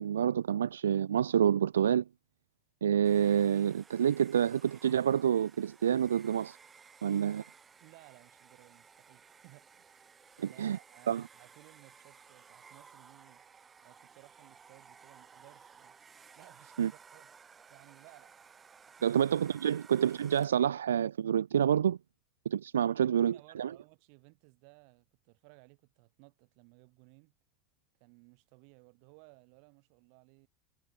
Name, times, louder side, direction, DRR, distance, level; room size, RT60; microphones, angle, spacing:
voice 1, 0.0-2.0 2.8-6.6 7.0-7.4 10.4-10.8 11.1-11.2 16.8-16.9 19.0-22.0 22.5-23.7, right 9 dB, 85° right, 0.4 m, -28 dB
Domestic sounds home sounds, 3.0-20.7, right 6 dB, 25° right, 3.9 m, -57 dB
voice 2, 7.8-10.0 10.5-13.4 13.8-16.0 16.4-17.3 17.7-18.3 18.9-19.2 22.8-27.3 28.0-30.5, right 40 dB or more, 60° right, 6.5 m, -59 dB
hypercardioid pair, 95°, 0 cm